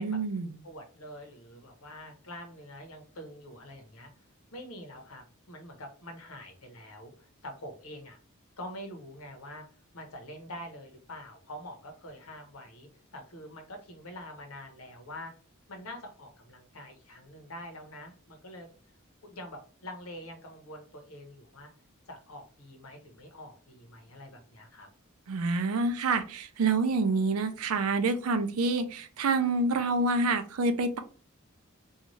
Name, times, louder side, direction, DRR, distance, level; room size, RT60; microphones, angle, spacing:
voice 1, 0.0-0.6 25.3-31.0, right 3 dB, 75° right, 0.4 m, -27 dB
voice 2, 0.6-4.1 4.5-8.2 8.6-9.7 9.9-15.3 15.7-18.7 19.2-21.7 22.1-24.9, left 1 dB, 75° left, 0.9 m, -45 dB
2.6 x 2.3 x 3.0 m
head